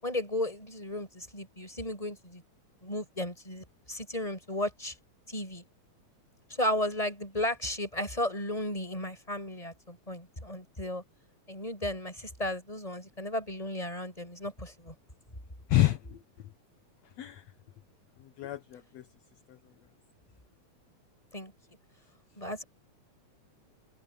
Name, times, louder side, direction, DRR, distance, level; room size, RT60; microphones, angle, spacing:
voice 1, 0.0-2.4 2.8-4.9 5.3-5.6 6.5-11.0 11.5-14.9 21.3-21.5 22.4-22.6, left 1 dB, 10° left, 8.1 m, -34 dB
voice 2, 15.7-16.2 17.2-17.4 18.4-19.0 19.5-19.6, left 14 dB, 65° left, 2.1 m, -28 dB
open air
omnidirectional pair, 3.6 m